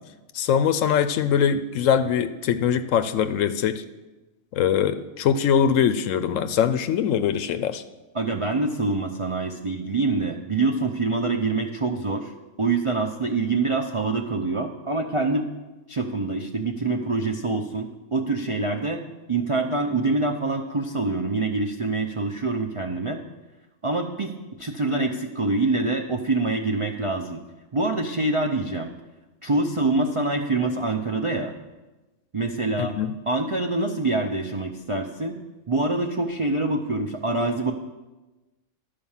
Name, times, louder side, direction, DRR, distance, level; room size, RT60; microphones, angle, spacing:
voice 1, 0.3-3.8 4.5-7.8 32.8-33.1, left 8 dB, 70° left, 11 dB, 0.9 m, -22 dB
voice 2, 8.1-12.3 12.6-15.5 15.9-19.0 19.3-23.2 23.8-27.4 27.7-28.9 29.4-31.5 32.3-33.0 33.3-35.4 35.7-37.7, right 3 dB, 50° right, 2 dB, 0.3 m, -25 dB
12.5 x 5.1 x 7.2 m, 1.1 s
omnidirectional pair, 1.5 m